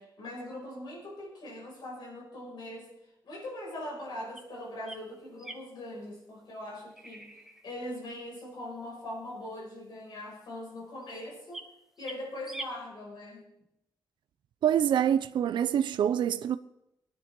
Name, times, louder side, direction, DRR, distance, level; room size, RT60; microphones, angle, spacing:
voice 1, 0.0-2.9 3.2-7.4 7.6-11.6 12.0-13.4, left 1 dB, 65° left, 5.8 m, -41 dB
sound 1, 4.4-4.5 4.8-5.0 5.4-5.9 6.9-7.6 11.0-11.1 11.5-11.6 12.0-12.2 12.5-12.7, right 1 dB, 5° right, 1.2 m, -43 dB
voice 2, 14.6-16.6, right 9 dB, 70° right, 0.5 m, -26 dB
23.5 x 10.0 x 3.8 m
wide cardioid pair, 165°, 8 cm